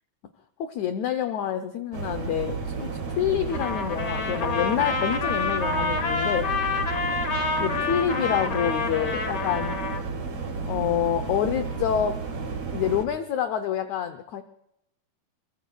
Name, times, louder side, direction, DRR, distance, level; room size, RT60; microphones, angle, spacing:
voice 1, 0.6-6.5 7.6-9.8 10.7-12.2 12.7-14.4, left 9 dB, 80° left, 9 dB, 1.7 m, -27 dB
sound 1, 1.9-13.1, right 4 dB, 45° right, 3.4 m, -32 dB
Trumpet, 3.5-10.0, left 4 dB, 50° left, 1.2 m, -28 dB
25.5 x 23.5 x 2.3 m, 0.78 s
omnidirectional pair, 4.3 m